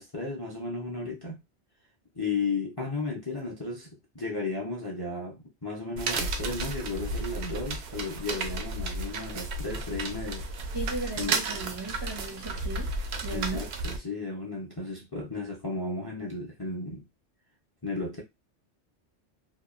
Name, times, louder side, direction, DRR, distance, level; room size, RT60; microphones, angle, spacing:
voice 1, 0.0-1.4 2.1-3.9 4.1-10.4 11.2-11.3 13.3-17.0 17.8-18.2, left 3 dB, 30° left, 0.5 m, -34 dB
sound 1, 6.0-14.0, right 3 dB, 70° right, 0.8 m, -33 dB
voice 2, 10.7-12.9 13.2-13.6, right 2 dB, 30° right, 0.5 m, -36 dB
2.8 x 2.3 x 2.4 m
omnidirectional pair, 1.2 m